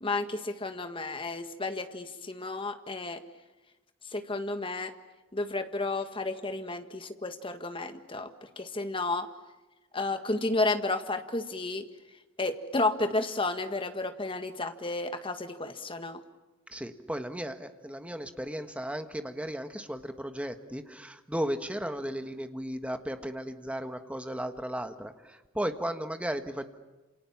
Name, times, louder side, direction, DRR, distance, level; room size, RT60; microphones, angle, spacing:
voice 1, 0.0-3.2 4.1-4.9 5.3-8.3 8.6-9.3 9.9-11.8 12.4-16.2, left 2 dB, 25° left, 8 dB, 1.7 m, -32 dB
voice 2, 16.7-26.7, equal, 5° right, 8 dB, 1.4 m, -35 dB
28.0 x 28.0 x 7.3 m, 1.1 s
head